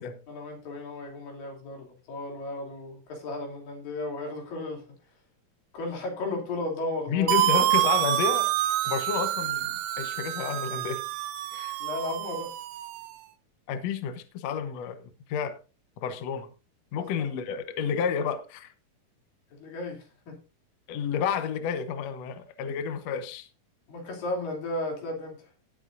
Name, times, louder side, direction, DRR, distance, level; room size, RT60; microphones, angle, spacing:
voice 1, 0.3-4.8 5.7-7.3 11.8-12.5 17.0-17.3 19.5-20.3 23.9-25.4, left 2 dB, 85° left, 4.7 m, -34 dB
voice 2, 7.1-8.5 8.8-11.0 11.5-11.8 13.7-15.6 16.0-16.5 16.9-18.7 20.9-23.5, left 7 dB, 65° left, 1.8 m, -30 dB
sound 1, 7.3-13.1, right 14 dB, 80° right, 2.4 m, -27 dB
18.0 x 8.0 x 2.6 m
omnidirectional pair, 3.9 m